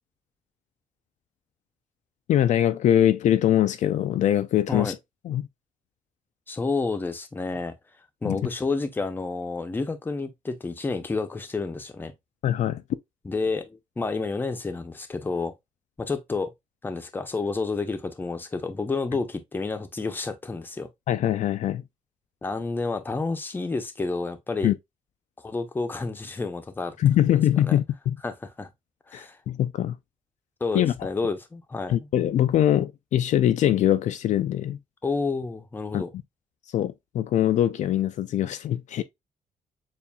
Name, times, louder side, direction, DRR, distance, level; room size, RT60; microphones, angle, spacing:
voice 1, 2.3-5.0 5.2-5.4 8.2-8.4 12.4-12.8 21.1-21.8 24.6-24.8 27.0-28.2 29.1-30.0 30.7-31.1 31.9-34.8 35.9-36.0 36.7-39.0, left 11 dB, 60° left, 0.4 m, -23 dB
voice 2, 6.5-7.7 8.2-12.1 13.2-15.5 16.0-16.5 16.8-20.9 22.4-24.7 25.4-27.0 27.3-27.8 28.2-28.7 29.1-29.4 30.6-32.0 35.0-36.1, left 3 dB, 15° left, 0.6 m, -30 dB
7.0 x 2.5 x 2.3 m
cardioid pair, 160°, 14 cm